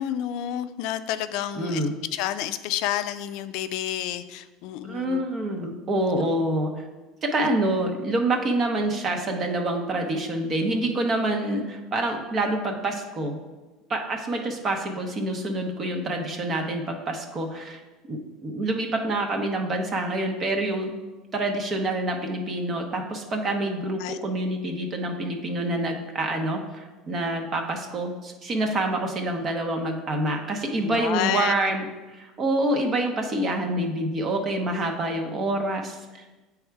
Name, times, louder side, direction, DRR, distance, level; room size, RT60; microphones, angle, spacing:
voice 1, 0.0-1.8 2.1-5.3 24.0-24.2 30.8-31.5, left 12 dB, 70° left, 12 dB, 0.4 m, -29 dB
voice 2, 1.5-1.9 4.8-6.8 7.2-13.4 13.9-17.8 18.1-20.9 21.3-36.4, right 1 dB, 35° right, 3 dB, 0.8 m, -27 dB
7.8 x 3.5 x 4.6 m, 1.2 s
supercardioid pair, 120°, 0 cm